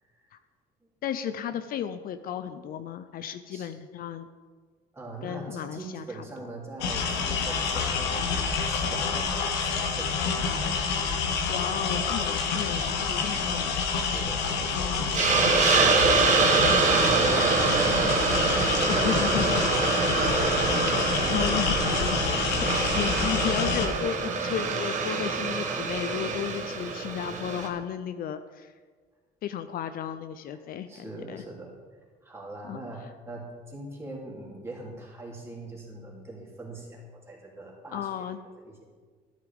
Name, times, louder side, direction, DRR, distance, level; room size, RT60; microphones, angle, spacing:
voice 1, 1.0-4.3 5.2-6.2 11.5-13.8 14.7-15.1 18.9-20.0 21.3-28.7 29.4-31.4 32.6-32.8 37.9-38.4, left 9 dB, 60° left, 11 dB, 0.5 m, -34 dB
voice 2, 4.9-10.1 12.4-12.5 13.9-20.6 30.9-31.7 32.2-38.3 38.6-38.8, right 2 dB, 15° right, -3 dB, 2.9 m, -42 dB
sound 1, 6.8-23.9, left 5 dB, 85° left, 1.3 m, -28 dB
Hiss, 15.1-27.7, right 4 dB, 45° right, 1.3 m, -25 dB
12.0 x 9.5 x 3.5 m, 1.5 s
cardioid pair, 110°, 17 cm